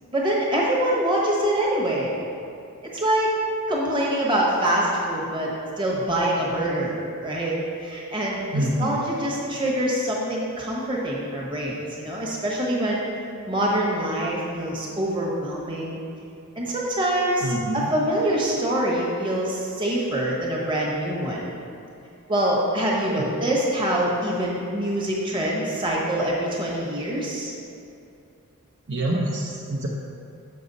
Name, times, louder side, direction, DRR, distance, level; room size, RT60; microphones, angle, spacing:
voice 1, 0.1-2.1 2.9-3.4 3.7-5.5 5.8-6.9 7.2-13.0 13.5-16.0 16.6-21.5 22.3-27.5, right 1 dB, 20° right, -4 dB, 1.2 m, -25 dB
voice 2, 8.5-9.0 17.4-17.9 28.9-29.9, right 1 dB, 55° right, -2 dB, 0.6 m, -26 dB
6.8 x 6.1 x 4.0 m, 2.6 s
head